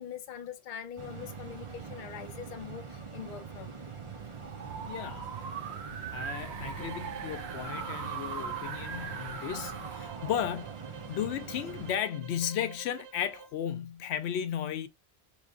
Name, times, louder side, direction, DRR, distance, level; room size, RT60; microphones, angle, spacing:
voice 1, 0.0-4.3 4.7-4.8 10.0-10.2, left 8 dB, 50° left, 0.8 m, -43 dB
sound 1, 1.0-12.0, right 5 dB, 35° right, 0.7 m, -44 dB
sound 2, 4.2-11.3, right 6 dB, 90° right, 1.0 m, -40 dB
voice 2, 4.8-5.5 6.1-14.9, left 9 dB, 85° left, 0.8 m, -35 dB
sound 3, 6.7-13.6, right 7 dB, 70° right, 0.8 m, -50 dB
4.8 x 3.1 x 2.4 m
omnidirectional pair, 1.1 m